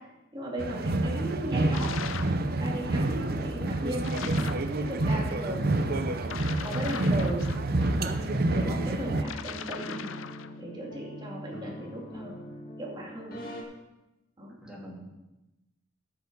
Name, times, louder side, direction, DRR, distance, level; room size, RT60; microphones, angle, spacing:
voice 1, 0.3-1.9 2.6-4.1 4.8-5.6 6.6-10.1 10.6-12.4 12.8-13.4 14.4-14.5, right 1 dB, 20° right, -3 dB, 2.7 m, -37 dB
sound 1, 0.6-9.2, right 2 dB, 45° right, 0.6 m, -28 dB
sound 2, 1.7-2.4 4.0-4.7 6.2-7.9 9.2-10.6, left 8 dB, 70° left, 0.5 m, -39 dB
sound 3, 8.3-13.6, equal, 45° left, 1.9 m, -42 dB
voice 2, 11.5-11.9 14.6-15.0, equal, 5° right, -4 dB, 2.6 m, -45 dB
12.5 x 6.9 x 5.4 m, 0.98 s
head